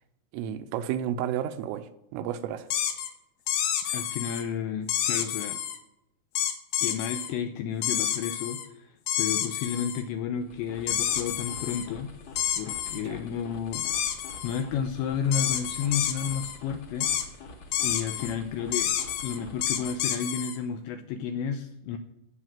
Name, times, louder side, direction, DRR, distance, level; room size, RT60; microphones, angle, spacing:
voice 1, 0.3-2.7 3.9-4.0 13.0-13.2, right 10 dB, 85° right, 3.3 m, -32 dB
sound 1, 2.7-3.1 3.5-4.4 4.9-5.8 6.3-7.3 7.8-8.7 9.1-10.0 10.9-11.9 12.4-13.0 13.7-14.6 15.3-16.6 17.0-17.2 17.7-18.3 18.7-20.6, left 10 dB, 70° left, 2.8 m, -29 dB
voice 2, 3.9-5.6 6.8-12.1 12.6-13.9 14.4-17.1 17.8-18.9 19.2-22.0, left 7 dB, 85° left, 2.6 m, -32 dB
sound 2, 10.3-20.2, left 2 dB, 50° left, 2.1 m, -47 dB
15.5 x 6.6 x 7.4 m
omnidirectional pair, 5.9 m